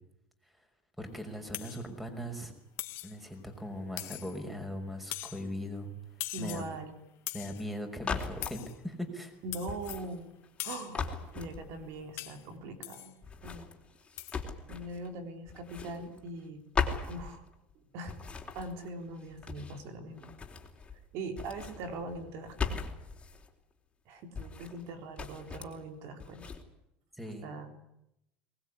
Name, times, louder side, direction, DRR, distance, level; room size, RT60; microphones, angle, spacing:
voice 1, 1.0-2.5 3.0-5.9 6.4-6.7 7.3-9.3 27.1-27.5, equal, ahead, 7 dB, 5.8 m, -39 dB
sound 1, 1.5-1.9 2.8-3.2 4.0-4.5 5.1-5.5 6.2-6.7 7.3-7.7 8.4-8.8 9.5-10.1 10.6-11.0 12.2-12.5 12.8-13.1 14.2-14.4, left 16 dB, 60° left, 2.1 m, -41 dB
voice 2, 6.3-7.0 9.4-10.3 10.6-11.0 11.3-13.1 13.4-13.7 14.7-16.6 17.1-17.5 17.9-20.3 20.9-22.8 24.1-26.5 27.4-27.7, right 2 dB, 65° right, 7 dB, 3.9 m, -41 dB
sound 2, 8.0-8.6 9.7-10.6 10.9-12.0 13.2-15.1 15.5-16.5 16.7-17.7 18.1-19.9 20.2-21.0 21.3-23.5 24.3-24.9 25.2-25.8 26.2-26.6, left 5 dB, 20° left, 4.1 m, -38 dB
23.5 x 20.0 x 10.0 m, 0.82 s
supercardioid pair, 115°, 5 cm